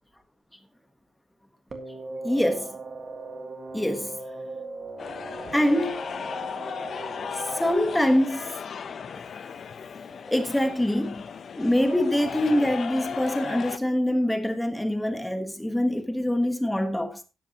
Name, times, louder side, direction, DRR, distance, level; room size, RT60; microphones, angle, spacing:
sound 1, 1.7-7.7, right 3 dB, 30° right, 1.7 m, -39 dB
voice 1, 2.2-2.8 3.7-4.2 5.5-6.0 7.3-8.6 10.3-17.2, left 1 dB, 5° left, 1.3 m, -25 dB
sound 2, 5.0-13.8, left 6 dB, 45° left, 0.7 m, -36 dB
13.0 x 10.5 x 2.9 m
wide cardioid pair, 175°, 0 cm